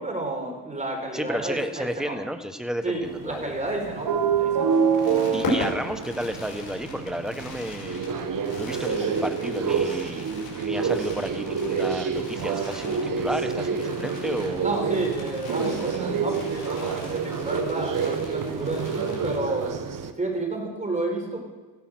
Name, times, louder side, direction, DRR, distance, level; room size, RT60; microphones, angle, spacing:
voice 1, 0.0-2.2 2.8-4.8 14.6-19.7 20.2-21.4, right 2 dB, 20° right, 2 dB, 4.2 m, -31 dB
voice 2, 1.1-3.6 5.3-8.0 8.5-10.3 10.6-14.6, equal, ahead, 7 dB, 1.3 m, -32 dB
sound 1, 3.0-20.1, right 6 dB, 50° right, 1.1 m, -28 dB
Fireworks, 4.6-19.8 20.1-20.2 20.4-20.6, left 2 dB, 60° left, 5.7 m, -38 dB
15.5 x 12.0 x 6.3 m, 1.3 s
cardioid pair, 105°, 40 cm